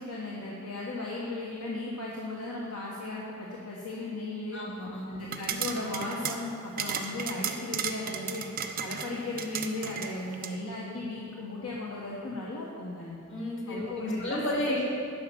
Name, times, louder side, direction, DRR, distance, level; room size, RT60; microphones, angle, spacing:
voice 1, 0.0-4.6 5.1-8.4 8.8-13.2 13.7-14.4 14.7-14.8, left 2 dB, 75° left, -5 dB, 1.3 m, -36 dB
voice 2, 4.5-5.2 13.3-14.8, left 1 dB, 55° left, -5 dB, 2.7 m, -32 dB
sound 1, 5.2-10.5, right 7 dB, 40° right, 0.6 m, -35 dB
11.5 x 5.7 x 7.2 m, 2.4 s
head